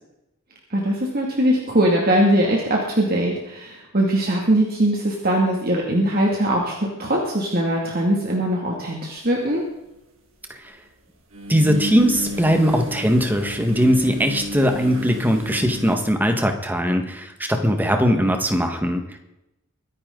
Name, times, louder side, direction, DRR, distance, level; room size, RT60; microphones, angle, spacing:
voice 1, 0.7-9.6, right 1 dB, 40° right, -2 dB, 2.4 m, -21 dB
sound 1, 9.4-9.5 11.3-16.0, left 1 dB, 65° right, 3.0 m, -32 dB
voice 2, 11.5-19.2, equal, 10° right, 5 dB, 1.6 m, -20 dB
23.5 x 10.5 x 3.9 m, 0.91 s
head